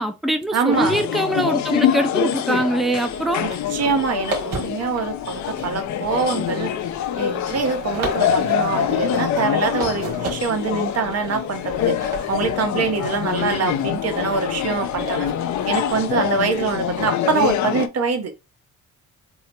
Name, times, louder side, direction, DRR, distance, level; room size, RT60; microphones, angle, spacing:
voice 1, 0.0-3.5, right 1 dB, ahead, 0.6 m, -22 dB
voice 2, 0.5-1.0 3.4-6.7 7.2-15.3 15.7-18.3, right 5 dB, 55° right, 1.0 m, -24 dB
sound 1, 0.7-17.9, left 9 dB, 70° left, 0.6 m, -25 dB
sound 2, 3.1-17.1, right 3 dB, 85° right, 1.6 m, -36 dB
3.7 x 2.1 x 4.4 m
cardioid pair, 90°, 30 cm